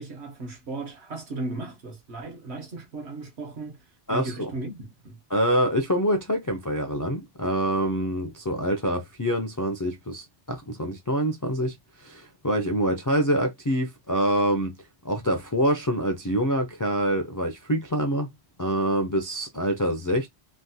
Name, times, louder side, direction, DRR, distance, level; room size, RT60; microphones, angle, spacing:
voice 1, 0.0-3.8 4.1-5.2, right 2 dB, 70° right, 1.2 m, -36 dB
voice 2, 4.1-4.5 5.3-14.7 15.0-18.3 18.6-20.3, equal, 35° left, 0.3 m, -26 dB
3.2 x 2.1 x 2.7 m
omnidirectional pair, 1.1 m